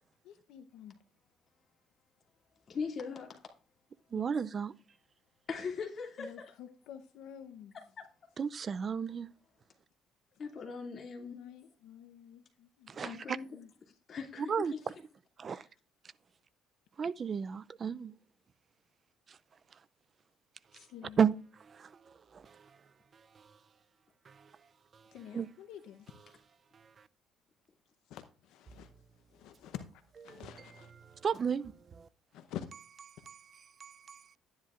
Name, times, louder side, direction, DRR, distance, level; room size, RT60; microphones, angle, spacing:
voice 1, 0.2-1.0 4.1-4.4 6.2-7.8 11.2-13.7 20.7-21.2 25.1-26.1 28.1-30.9 32.3-32.7, left 10 dB, 80° left, 0.8 m, -49 dB
voice 2, 2.7-3.4 5.5-6.5 8.0-8.1 10.4-11.4 13.0-13.5 14.1-14.5, left 5 dB, 40° left, 2.4 m, -40 dB
voice 3, 4.1-4.7 8.4-9.3 12.9-13.4 14.4-14.9 15.4-15.7 17.0-18.1 19.3-19.4 19.7-19.8 20.7-20.9 21.2-23.6 24.3-25.5 26.7-27.1 30.3-30.4 31.0-32.1 33.3-34.4, right 7 dB, 35° right, 0.4 m, -35 dB
12.0 x 10.0 x 2.5 m
cardioid pair, 130°, 0 cm